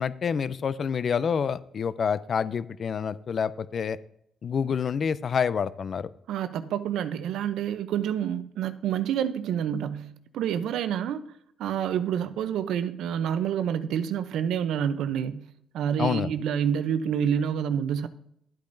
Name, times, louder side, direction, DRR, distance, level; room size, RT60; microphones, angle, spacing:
voice 1, 0.0-4.0 4.4-6.1 16.0-16.3, left 6 dB, 50° left, 16 dB, 0.4 m, -27 dB
voice 2, 6.3-18.1, right 9 dB, 80° right, 12 dB, 0.6 m, -28 dB
11.5 x 8.6 x 2.6 m, 0.73 s
cardioid pair, 90°, 0 cm